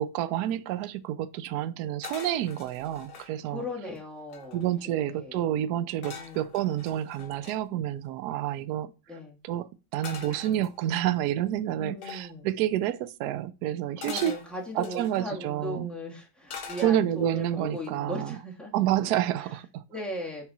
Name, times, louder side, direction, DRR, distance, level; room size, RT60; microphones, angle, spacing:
voice 1, 0.0-3.6 4.5-8.9 9.4-14.3 14.8-15.9 16.8-18.4 18.7-19.8, right 12 dB, 80° right, 0.9 m, -29 dB
sound 1, 2.0-3.3 3.9-4.0 4.2-4.8 6.0-7.6 10.0-11.1 12.0-12.3 14.0-15.2 16.5-17.3 17.8-18.1, left 5 dB, 55° left, 1.7 m, -43 dB
voice 2, 3.4-5.4 6.0-6.5 9.1-9.4 11.8-12.5 14.0-18.7 19.4-19.5 19.9-20.5, left 1 dB, ahead, 1.6 m, -38 dB
6.4 x 3.9 x 4.1 m
omnidirectional pair, 2.2 m